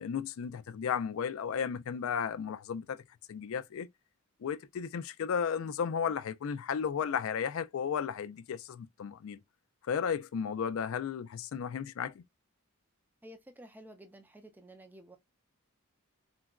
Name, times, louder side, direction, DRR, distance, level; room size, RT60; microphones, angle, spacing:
voice 1, 0.0-3.0 3.3-3.9 4.4-9.4 9.8-12.2, left 7 dB, 65° left, 0.3 m, -34 dB
voice 2, 13.2-15.2, right 1 dB, 10° right, 0.4 m, -52 dB
3.8 x 2.2 x 2.3 m
head